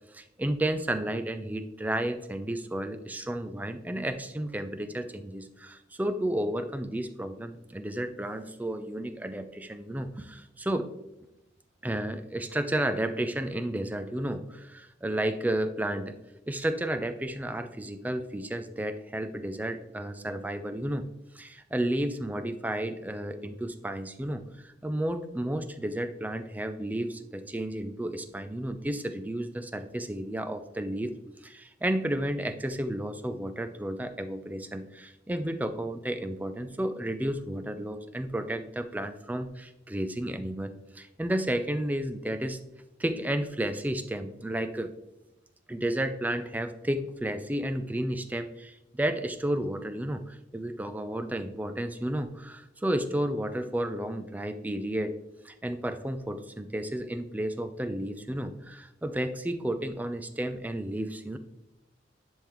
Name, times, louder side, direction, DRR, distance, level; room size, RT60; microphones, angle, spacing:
voice 1, 0.1-10.9 11.8-16.1 16.5-21.0 21.3-31.1 31.4-42.6 43.0-44.9 45.7-55.1 55.4-61.4, right 1 dB, 10° right, 9 dB, 0.4 m, -32 dB
10.0 x 3.7 x 3.0 m, 0.90 s
head